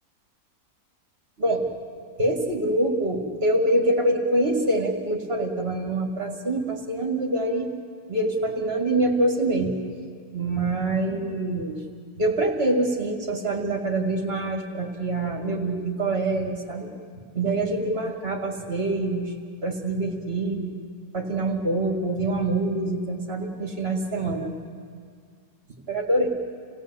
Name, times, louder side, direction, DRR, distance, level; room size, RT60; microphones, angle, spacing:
voice 1, 2.2-7.7 8.1-9.7 10.3-11.8 12.2-16.9 17.3-19.3 19.6-20.7 21.1-24.5 25.9-26.3, right 2 dB, 40° right, 2 dB, 2.7 m, -25 dB
28.0 x 16.5 x 8.3 m, 2.1 s
omnidirectional pair, 1.6 m